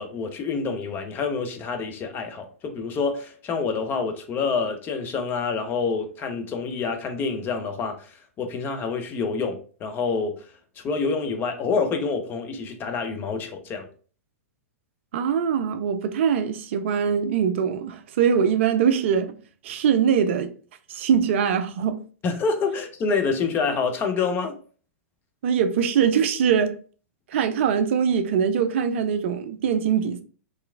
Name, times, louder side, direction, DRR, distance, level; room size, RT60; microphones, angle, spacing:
voice 1, 0.0-8.1 8.4-10.4 10.8-13.9 22.2-24.5, left 4 dB, 25° left, 0.5 m, -27 dB
voice 2, 15.1-19.3 19.6-20.5 20.9-22.0 25.4-26.8 27.3-30.2, right 7 dB, 55° right, 0.3 m, -22 dB
2.8 x 2.3 x 2.3 m
figure-of-eight pair, 105°, 8 cm